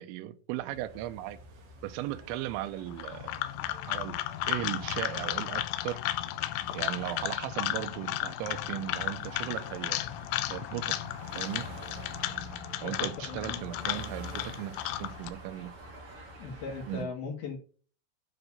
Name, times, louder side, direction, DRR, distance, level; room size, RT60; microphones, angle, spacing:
voice 1, 0.0-1.4 1.8-3.3 3.9-4.2 4.5-6.0 6.7-10.0 10.5-11.0 11.3-11.7 12.8-15.7 16.9-17.1, right 14 dB, 80° right, 2.9 m, -37 dB
sound 1, 0.6-17.0, right 1 dB, 40° right, 2.4 m, -49 dB
sound 2, 0.7-7.3, right 1 dB, 60° right, 3.1 m, -54 dB
sound 3, 2.9-15.3, left 14 dB, 85° left, 3.1 m, -34 dB
voice 2, 12.8-14.0 16.4-17.6, left 4 dB, 55° left, 3.6 m, -39 dB
9.9 x 3.9 x 7.0 m
omnidirectional pair, 5.8 m